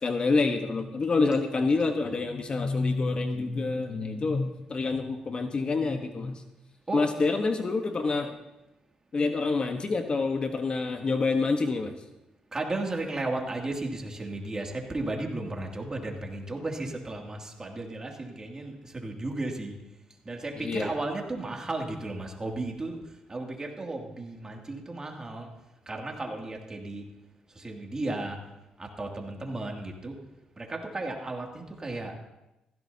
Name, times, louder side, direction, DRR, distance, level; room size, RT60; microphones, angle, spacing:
voice 1, 0.0-6.4 6.9-8.4 9.1-11.9 20.6-20.9, left 3 dB, 40° left, 6 dB, 1.2 m, -27 dB
voice 2, 12.5-19.8 20.2-23.0 23.3-25.5 25.9-27.0 27.6-28.4 28.8-30.2 30.6-32.1, right 2 dB, 25° right, 0 dB, 2.6 m, -34 dB
16.0 x 15.5 x 2.8 m, 0.95 s
cardioid pair, 75°, 2 cm